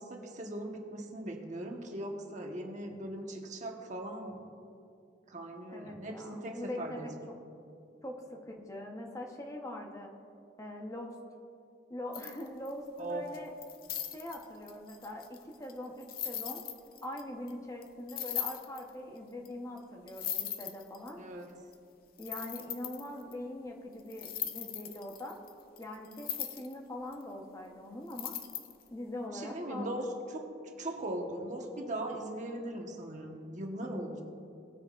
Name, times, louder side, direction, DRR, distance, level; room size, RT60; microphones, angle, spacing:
voice 1, 0.0-4.4 5.3-7.1 13.0-13.3 21.2-21.5 29.3-30.1 30.3-30.5 30.8-34.2, right 1 dB, 45° right, 2 dB, 1.2 m, -39 dB
voice 2, 5.7-7.3 8.0-10.1 10.6-11.1 11.9-13.5 14.1-16.6 17.0-21.2 22.2-25.4 25.8-28.4 28.9-29.9, left 1 dB, 20° left, 1 dB, 1.0 m, -42 dB
sound 1, 12.1-12.9 13.3-17.2 17.5-17.6 17.8-17.9 18.1-18.9 19.5-19.6 19.8-19.9 20.1-21.1 21.7-21.8 22.2-23.3 24.1-26.7 27.1-27.2 28.1-28.9, left 10 dB, 55° left, 0.6 m, -39 dB
19.0 x 9.3 x 2.5 m, 2.6 s
head